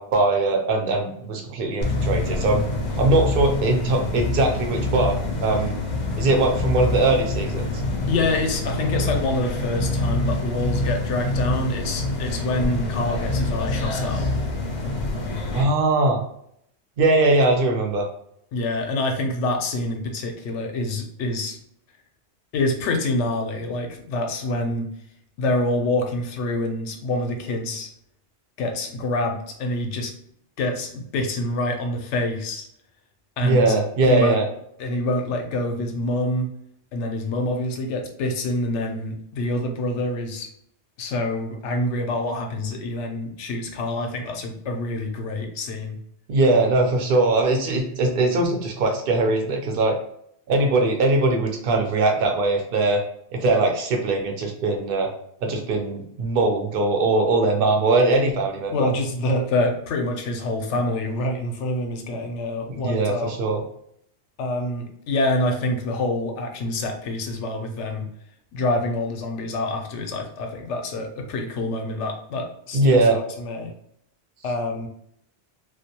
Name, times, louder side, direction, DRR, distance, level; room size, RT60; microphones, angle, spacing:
voice 1, 0.0-2.6 3.0-5.8 6.2-7.7 15.5-16.2 17.0-18.1 33.4-34.5 46.3-50.0 50.5-53.0 53.3-55.1 55.4-58.9 62.7-63.6 72.7-73.2, right 2 dB, 60° right, 3 dB, 0.7 m, -21 dB
sound 1, 1.8-15.6, left 2 dB, 55° left, 0.5 m, -26 dB
voice 2, 8.1-14.3 18.5-21.6 22.5-24.9 25.4-27.9 28.6-30.1 30.6-32.7 33.4-34.4 34.8-36.5 36.9-40.5 41.0-46.0 58.7-63.3 64.4-68.1 68.5-73.7 74.4-74.9, left 2 dB, 85° left, 4 dB, 0.9 m, -26 dB
2.3 x 2.1 x 2.8 m, 0.70 s
omnidirectional pair, 1.2 m